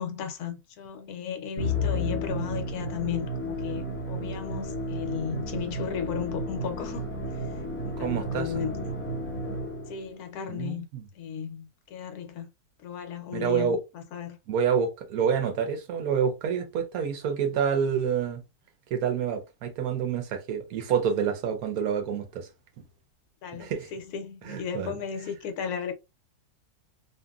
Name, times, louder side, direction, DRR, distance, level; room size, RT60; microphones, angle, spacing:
voice 1, 0.0-7.1 7.8-8.8 9.9-10.9 11.1-12.5 12.8-14.4 23.4-25.9, left 8 dB, 80° left, 1.2 m, -35 dB
Musical instrument, 1.6-10.1, equal, 10° left, 0.8 m, -32 dB
voice 2, 8.0-8.6 10.5-11.1 13.3-13.8 14.5-18.4 18.9-22.5 23.6-23.9 24.4-24.9, right 7 dB, 75° right, 1.1 m, -28 dB
2.8 x 2.6 x 2.3 m
omnidirectional pair, 1.6 m